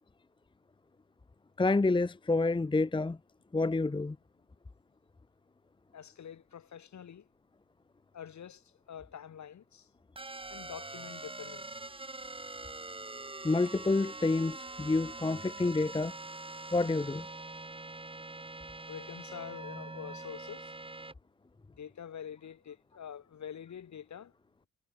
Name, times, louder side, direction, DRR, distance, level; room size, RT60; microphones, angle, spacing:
voice 1, 1.6-3.2 3.5-4.2 13.4-16.1 16.7-17.3, left 3 dB, 15° left, 1.0 m, -28 dB
voice 2, 5.9-7.3 8.1-9.9 10.5-11.7 18.9-20.7 21.8-24.3, left 8 dB, 50° left, 6.3 m, -46 dB
sound 1, 10.2-21.1, right 2 dB, 15° right, 2.3 m, -44 dB
hypercardioid pair, 55°, 35 cm